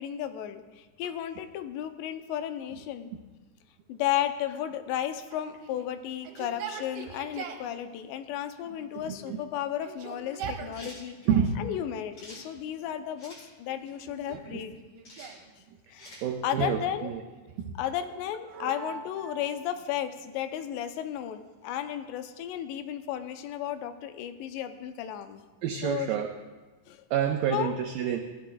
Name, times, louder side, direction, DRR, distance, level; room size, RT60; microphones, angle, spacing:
voice 1, 0.0-3.1 3.9-11.2 11.6-14.7 15.9-17.1 17.8-25.4 25.8-26.1 26.9-27.0 27.5-27.7, left 11 dB, 90° left, 8 dB, 2.9 m, -34 dB
Yell, 5.3-7.7 8.6-9.3 9.7-11.6 12.3-13.0 13.7-15.5 16.9-17.7 18.6-20.3, right 7 dB, 70° right, 2.7 m, -44 dB
voice 2, 8.9-9.5 10.4-10.5 11.3-11.6 14.3-14.6 16.2-17.2 17.6-17.8 18.5-19.6 25.6-26.3 27.1-28.2, right 8 dB, 90° right, 4 dB, 1.9 m, -30 dB
sound 1, 10.7-11.0 12.1-12.4 13.2-13.4 15.0-15.3 16.0-16.3, left 1 dB, 30° left, 5.9 m, -47 dB
18.5 x 15.5 x 2.3 m, 1.2 s
omnidirectional pair, 4.8 m